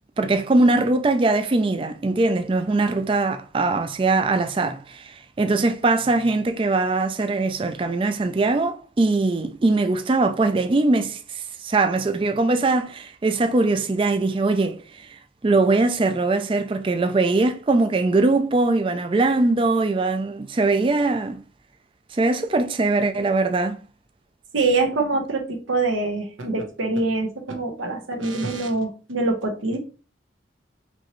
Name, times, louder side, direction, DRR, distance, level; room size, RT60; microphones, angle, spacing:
voice 1, 0.2-15.1 15.4-21.4 22.1-23.8, right 3 dB, 25° right, 0.3 m, -21 dB
voice 2, 24.5-29.8, right 3 dB, 85° right, 1.0 m, -24 dB
4.4 x 3.0 x 3.0 m
head